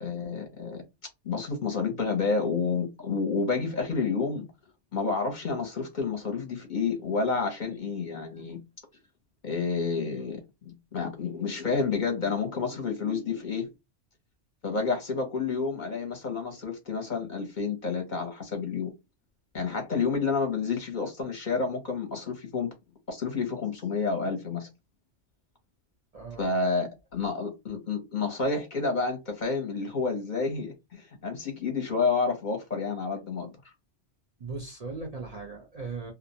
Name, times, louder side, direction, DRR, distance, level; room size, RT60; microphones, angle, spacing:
voice 1, 0.0-0.8 1.2-4.5 4.9-8.6 9.4-13.7 14.6-18.9 19.5-22.7 23.1-24.7 26.4-33.5, left 4 dB, 45° left, 0.7 m, -29 dB
voice 2, 26.1-26.5 34.4-36.1, right 4 dB, 45° right, 0.5 m, -38 dB
2.4 x 2.1 x 2.7 m
omnidirectional pair, 1.2 m